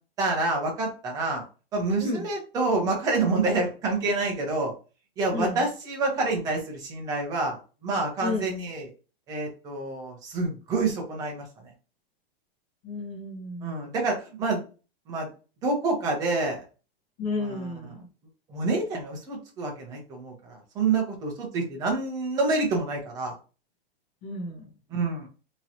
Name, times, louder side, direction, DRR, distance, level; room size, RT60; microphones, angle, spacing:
voice 1, 0.2-1.4 1.7-4.7 5.2-8.9 9.3-11.4 13.6-14.6 15.1-15.3 15.6-16.6 17.4-17.7 18.5-23.3 24.9-25.3, right 3 dB, 10° right, 0 dB, 0.7 m, -27 dB
voice 2, 5.3-5.7 8.2-8.4 12.8-13.8 17.2-18.1 24.2-24.7, left 3 dB, 30° left, -2 dB, 1.3 m, -32 dB
3.7 x 3.0 x 2.8 m, 0.33 s
hypercardioid pair, 170°, 30 cm